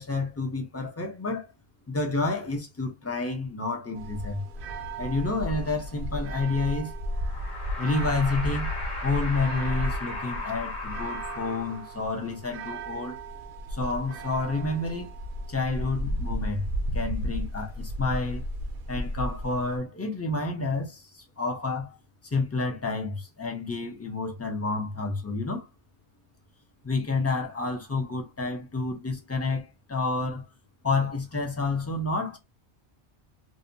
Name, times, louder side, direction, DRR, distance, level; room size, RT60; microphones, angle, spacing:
voice 1, 0.0-1.5 1.9-4.5 5.0-7.0 7.8-8.7 9.0-13.2 13.7-15.1 15.5-16.7 16.9-18.4 18.9-22.0 22.2-25.7 26.8-30.4 30.8-32.4, left 3 dB, 20° left, 0.4 m, -29 dB
sound 1, 3.9-19.8, equal, 60° right, 0.6 m, -34 dB
sound 2, 7.1-12.2, left 3 dB, 75° left, 1.2 m, -37 dB
2.7 x 2.1 x 2.6 m
omnidirectional pair, 1.2 m